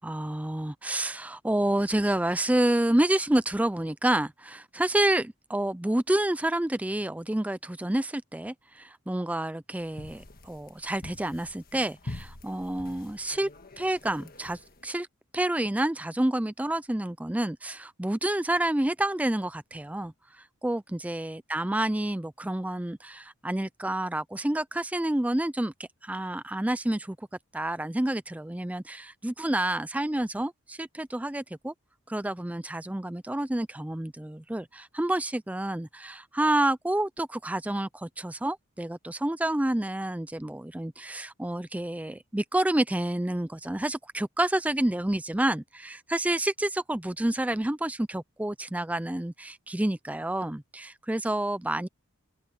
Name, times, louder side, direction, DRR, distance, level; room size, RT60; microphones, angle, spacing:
voice 1, 0.0-13.5 13.8-15.1 15.3-27.3 27.5-31.7 32.1-51.9, right 1 dB, 5° right, 0.4 m, -29 dB
sound 1, 9.8-14.9, left 2 dB, 45° left, 1.6 m, -45 dB
head